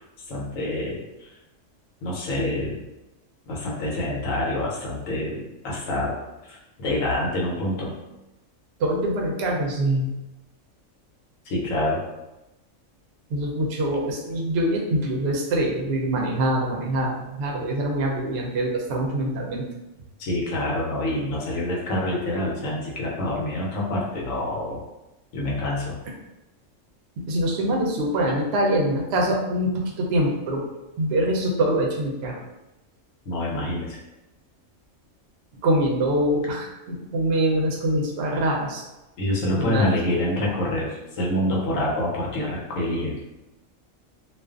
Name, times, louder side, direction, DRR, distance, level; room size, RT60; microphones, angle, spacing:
voice 1, 0.3-1.0 2.0-2.8 3.5-6.2 6.5-7.9 11.5-12.0 20.2-24.8 25.3-26.0 33.3-34.0 39.2-43.2, left 1 dB, 80° left, -3 dB, 1.1 m, -26 dB
voice 2, 8.8-10.1 13.3-19.7 27.2-30.6 31.0-32.4 35.6-38.9 39.6-39.9, right 1 dB, 65° right, -1 dB, 0.7 m, -24 dB
2.4 x 2.4 x 2.3 m, 0.98 s
omnidirectional pair, 1.3 m